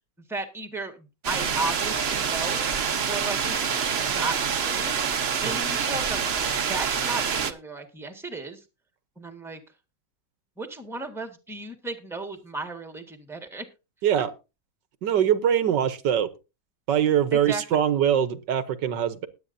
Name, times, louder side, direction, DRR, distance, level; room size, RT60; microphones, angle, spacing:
voice 1, 0.3-2.7 3.1-4.9 5.4-8.6 9.2-9.6 10.6-13.6 14.1-14.2 17.3-17.6, right 3 dB, ahead, 6 dB, 1.6 m, -35 dB
sound 1, 1.2-7.5, right 6 dB, 45° right, 1.0 m, -26 dB
voice 2, 15.0-16.3 16.9-19.3, right 9 dB, 80° right, 12 dB, 1.6 m, -23 dB
20.0 x 8.8 x 2.7 m, 0.28 s
omnidirectional pair, 1.9 m